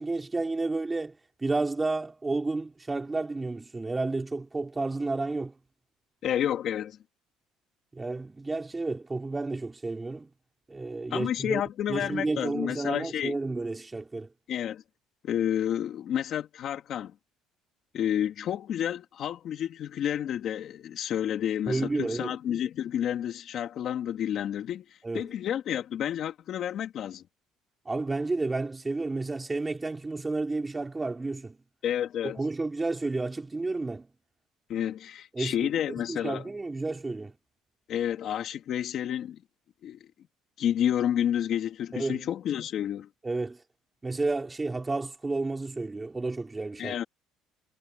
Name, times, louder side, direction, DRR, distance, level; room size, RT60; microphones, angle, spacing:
voice 1, 0.0-5.5 7.9-10.3 10.7-11.6 11.9-14.3 21.7-22.3 25.0-25.3 27.9-31.6 32.2-34.1 35.3-35.7 36.1-37.3 41.9-42.3 43.2-43.6 44.0-47.0, right 3 dB, 15° right, 3.9 m, -31 dB
voice 2, 6.2-7.0 11.1-13.4 14.5-14.8 15.2-17.1 17.9-27.2 31.8-32.4 34.7-36.4 37.9-39.4 39.8-40.1 40.6-43.1 46.8-47.0, left 10 dB, 50° left, 3.1 m, -30 dB
cardioid pair, 145°, 0 cm